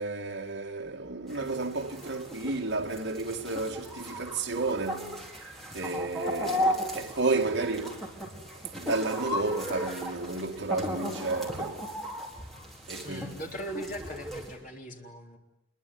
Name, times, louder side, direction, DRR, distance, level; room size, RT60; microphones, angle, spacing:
voice 1, 0.0-5.2 5.7-8.1 8.5-11.9 12.9-13.4, right 3 dB, 65° right, 2.3 m, -32 dB
sound 1, 1.3-14.6, equal, ahead, 4.7 m, -36 dB
voice 2, 13.0-15.4, right 1 dB, 40° left, 3.8 m, -39 dB
26.5 x 22.5 x 9.6 m
head